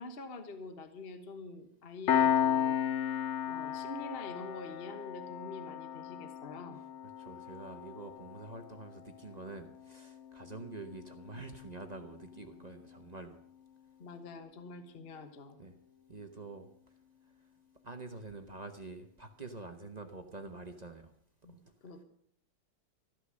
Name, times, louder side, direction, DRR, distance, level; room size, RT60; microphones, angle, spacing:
voice 1, 0.0-2.8 3.4-6.8 12.5-12.6 14.0-15.6 21.4-22.0, left 3 dB, 35° left, 8 dB, 1.1 m, -46 dB
Piano, 2.1-13.2, left 9 dB, 75° left, 0.6 m, -35 dB
voice 2, 7.2-13.4 15.6-15.7 16.1-16.7 17.8-21.1, right 3 dB, 35° right, 6 dB, 0.7 m, -46 dB
13.5 x 11.5 x 6.3 m, 0.67 s
omnidirectional pair, 2.2 m